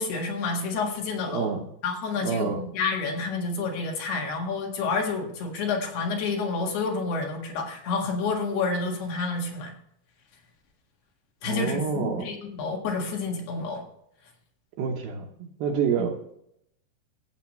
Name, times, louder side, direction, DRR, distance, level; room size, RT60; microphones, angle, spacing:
voice 1, 0.0-1.5 1.8-9.7 11.4-13.8, left 4 dB, 70° left, 1 dB, 3.7 m, -29 dB
voice 2, 1.3-1.7 2.2-2.6 11.4-12.3 14.8-16.2, right 6 dB, 70° right, 2 dB, 2.5 m, -28 dB
15.5 x 8.0 x 3.2 m, 0.75 s
omnidirectional pair, 5.1 m